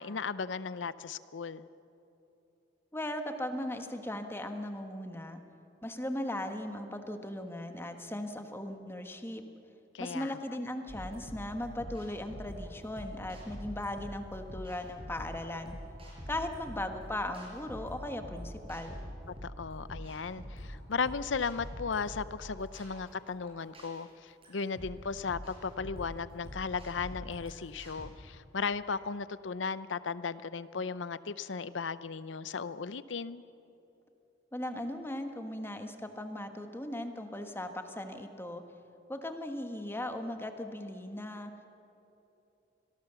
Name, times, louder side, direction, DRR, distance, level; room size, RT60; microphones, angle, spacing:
voice 1, 0.0-1.7 9.9-10.4 19.4-33.4, left 5 dB, 90° left, 16 dB, 0.7 m, -36 dB
voice 2, 2.9-5.4 5.8-9.4 10.0-15.7 16.3-19.0 34.5-38.6 39.1-41.5, left 1 dB, 15° left, 6 dB, 1.4 m, -38 dB
sound 1, 10.9-28.1, equal, 30° right, 6.2 m, -45 dB
25.5 x 18.5 x 6.9 m, 2.9 s
head